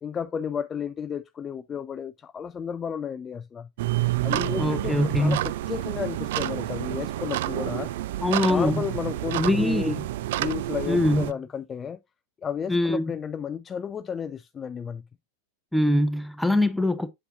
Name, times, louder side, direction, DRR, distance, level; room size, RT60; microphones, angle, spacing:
voice 1, 0.0-3.7 4.2-7.9 8.5-9.9 10.3-12.0 12.4-15.0, left 7 dB, 20° left, 0.3 m, -33 dB
sound 1, 3.8-11.3, right 15 dB, 55° right, 0.4 m, -29 dB
voice 2, 4.6-5.4 8.2-8.8 9.4-10.0 10.9-11.3 12.7-13.1 15.7-17.1, left 1 dB, ahead, 0.8 m, -23 dB
7.9 x 7.7 x 2.5 m
figure-of-eight pair, 90°, 0 cm